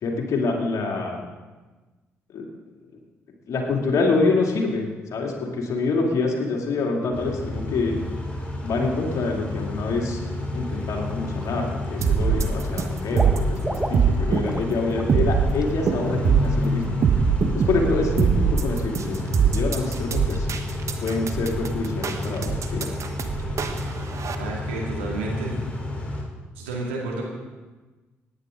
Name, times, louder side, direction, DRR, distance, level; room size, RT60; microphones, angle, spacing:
voice 1, 0.0-1.2 2.3-2.4 3.5-4.8 5.1-8.0 8.6-10.2 10.5-17.0 17.5-20.5 21.0-22.9, left 3 dB, 60° left, 0 dB, 2.6 m, -26 dB
Car / Idling / Accelerating revving vroom, 7.1-26.2, left 2 dB, 15° left, 4.3 m, -31 dB
Water / Liquid, 10.7-10.8 11.2-11.9 12.2-14.7 15.0-15.2 15.5-15.6, right 1 dB, 10° right, 1.3 m, -34 dB
sound 1, 12.0-24.3, right 6 dB, 50° right, 1.2 m, -23 dB
voice 2, 24.4-25.5 26.6-27.2, right 3 dB, 85° right, -3 dB, 2.4 m, -30 dB
17.5 x 9.8 x 3.8 m, 1.2 s
hypercardioid pair, 45°, 6 cm